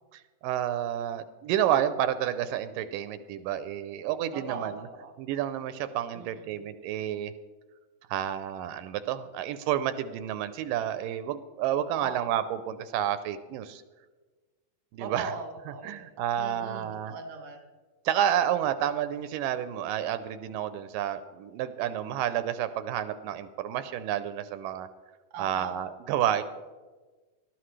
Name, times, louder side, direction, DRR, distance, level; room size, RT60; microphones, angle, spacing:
voice 1, 0.1-4.9 5.2-7.3 8.1-13.8 14.9-15.3 15.8-17.1 18.1-24.9 25.4-26.4, right 10 dB, 85° right, 12 dB, 2.2 m, -30 dB
voice 2, 4.3-5.1 6.1-6.5 12.0-12.3 15.0-16.0 16.4-17.6 25.3-25.8, right 4 dB, 45° right, 4 dB, 1.5 m, -39 dB
18.5 x 12.5 x 3.3 m, 1.3 s
omnidirectional pair, 3.9 m